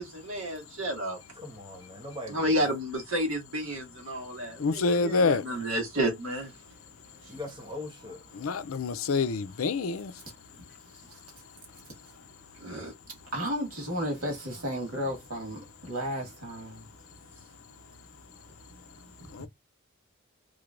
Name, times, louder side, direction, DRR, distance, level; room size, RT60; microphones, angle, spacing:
voice 1, 0.0-1.2 2.3-6.5 12.6-12.9, right 1 dB, 70° right, 1.9 m, -31 dB
voice 2, 1.4-2.7 7.3-8.2, left 1 dB, 20° right, 1.1 m, -40 dB
voice 3, 4.6-5.4 8.3-10.1 19.3-19.5, left 3 dB, 70° left, 0.5 m, -27 dB
voice 4, 7.2-7.5 8.0-8.6 9.6-9.7 10.2-10.3 10.9-11.2 11.7-11.9 13.3-16.9 18.7-19.1, equal, 85° right, 2.1 m, -35 dB
3.7 x 3.3 x 2.5 m
head